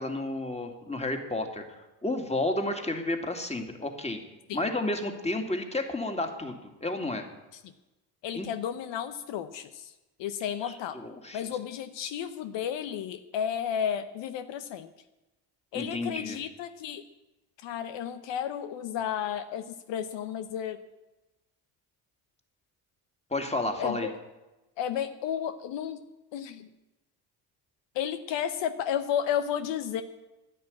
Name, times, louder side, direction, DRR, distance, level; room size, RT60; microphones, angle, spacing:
voice 1, 0.0-4.2 4.5-7.2 8.3-8.5 10.6-11.4 15.7-16.4 23.3-24.1, left 2 dB, 15° left, 4 dB, 2.6 m, -31 dB
voice 2, 8.2-9.9 10.2-11.0 11.3-14.9 15.7-17.0 17.6-20.8 23.8-24.1 24.8-26.0 26.3-26.7 27.9-30.0, left 9 dB, 75° left, 10 dB, 0.9 m, -32 dB
11.0 x 9.9 x 8.6 m, 1.0 s
supercardioid pair, 65°, 44 cm